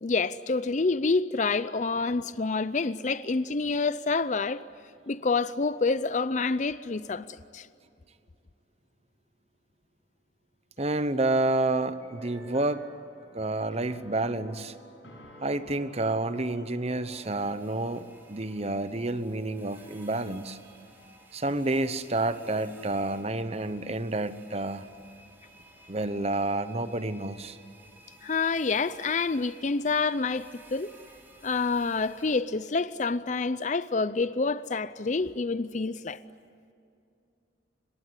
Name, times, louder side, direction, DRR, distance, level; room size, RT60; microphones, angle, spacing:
voice 1, 0.0-4.6 5.1-7.2 7.5-7.7 28.2-30.9 31.4-36.2, left 4 dB, 40° left, 0.5 m, -27 dB
voice 2, 10.8-12.8 13.3-14.7 15.4-20.6 21.3-24.8 25.9-27.6, right 2 dB, 35° right, 1.0 m, -29 dB
sound 1, 12.0-17.2, equal, 90° left, 6.7 m, -51 dB
sound 2, 17.1-32.4, right 1 dB, 10° right, 4.5 m, -55 dB
25.0 x 21.5 x 9.8 m
head